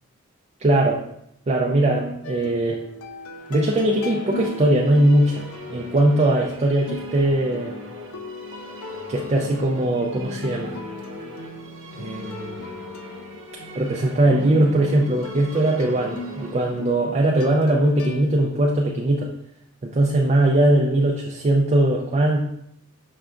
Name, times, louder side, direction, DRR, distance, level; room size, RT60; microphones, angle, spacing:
voice 1, 0.6-1.0 1.5-2.8 3.5-5.4 5.7-7.7 9.1-10.8 11.9-12.6 13.7-19.3 19.8-22.5, right 1 dB, 30° right, -1 dB, 0.4 m, -20 dB
sound 1, 2.2-18.5, left 3 dB, 75° left, 0.4 m, -39 dB
Musical instrument, 3.2-18.6, left 1 dB, 60° right, 0.7 m, -41 dB
5.8 x 3.3 x 2.5 m, 0.74 s
head